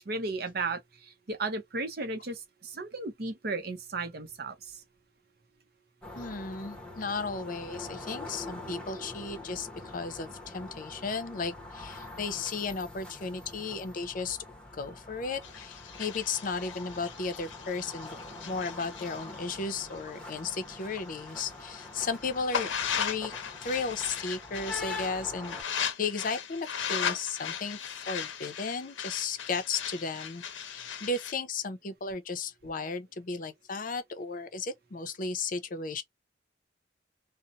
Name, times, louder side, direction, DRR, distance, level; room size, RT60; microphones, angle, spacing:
voice 1, 0.1-4.6, right 3 dB, 55° right, 0.7 m, -35 dB
sound 1, 6.0-25.6, left 2 dB, 5° left, 0.9 m, -44 dB
voice 2, 6.1-14.4 14.7-18.2 18.5-22.7 22.9-23.3 23.6-25.6 26.0-27.8 28.1-36.0, left 4 dB, 45° left, 0.5 m, -35 dB
sound 2, 15.4-21.0 21.4-31.3, left 8 dB, 85° left, 0.6 m, -37 dB
2.8 x 2.0 x 2.5 m
head